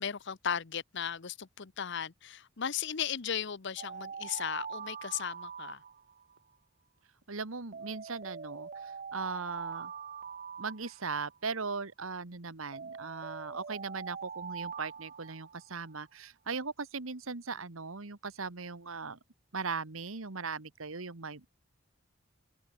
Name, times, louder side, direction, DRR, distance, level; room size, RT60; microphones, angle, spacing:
voice 1, 0.0-5.8, left 8 dB, 60° left, 0.8 m, -36 dB
Alarm, 3.8-6.4 7.7-11.4 12.7-15.9, right 6 dB, 40° right, 0.6 m, -43 dB
voice 2, 7.3-9.9 10.6-19.2 19.5-21.6, right 4 dB, 80° right, 1.6 m, -39 dB
open air
head